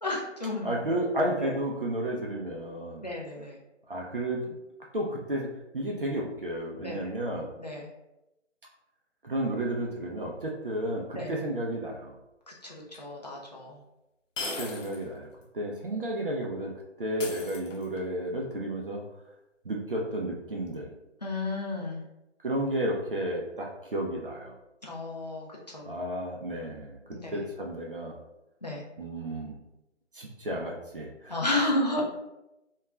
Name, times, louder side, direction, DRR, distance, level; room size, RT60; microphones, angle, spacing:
voice 1, 0.0-1.0 1.4-1.5 3.0-3.6 6.8-7.1 7.6-7.9 11.1-11.3 12.5-13.8 21.2-22.0 24.8-25.5 25.7-25.9 27.1-27.4 28.6-28.8 31.3-32.0, left 2 dB, 35° left, -3 dB, 0.4 m, -32 dB
voice 2, 0.6-3.0 3.9-4.4 4.9-5.5 5.7-7.5 9.2-12.1 14.6-15.3 15.5-16.7 17.0-19.0 19.7-20.9 22.4-24.5 25.9-27.0 27.3-28.1 29.0-29.6 30.1-31.4, right 1 dB, 50° right, -2 dB, 0.4 m, -32 dB
sound 1, 12.9-13.0 14.4-15.1 15.4-15.5 17.2-18.1, left 3 dB, 85° left, 0.7 m, -37 dB
2.3 x 2.2 x 3.0 m, 0.93 s
figure-of-eight pair, 165°, 37 cm